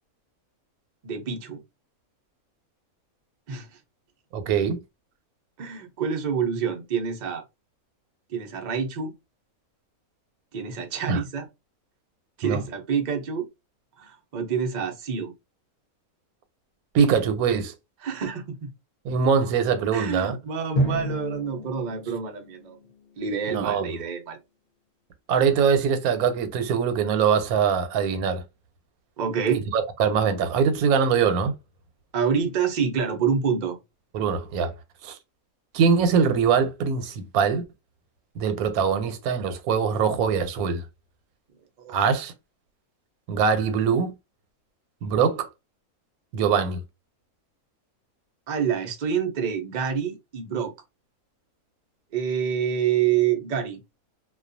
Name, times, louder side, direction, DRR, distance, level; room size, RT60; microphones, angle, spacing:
voice 1, 1.0-1.6 3.5-3.7 5.6-7.4 8.3-9.1 10.5-11.5 12.4-13.5 14.0-15.3 18.0-18.7 19.9-22.8 23.2-24.4 29.2-29.6 32.1-33.8 41.8-41.9 48.5-50.7 52.1-53.8, right 7 dB, 70° right, 0.4 m, -27 dB
voice 2, 4.3-4.8 11.1-11.2 12.4-12.6 16.9-17.7 19.0-20.4 23.5-23.9 25.3-28.4 29.7-31.5 34.1-34.7 35.0-35.2 35.7-37.6 38.4-40.8 41.9-42.3 43.3-44.1 45.0-45.5 46.3-46.8, right 6 dB, 85° right, 1.1 m, -22 dB
Drum, 20.8-23.5, right 1 dB, 35° left, 0.6 m, -30 dB
2.3 x 2.2 x 2.5 m
omnidirectional pair, 1.5 m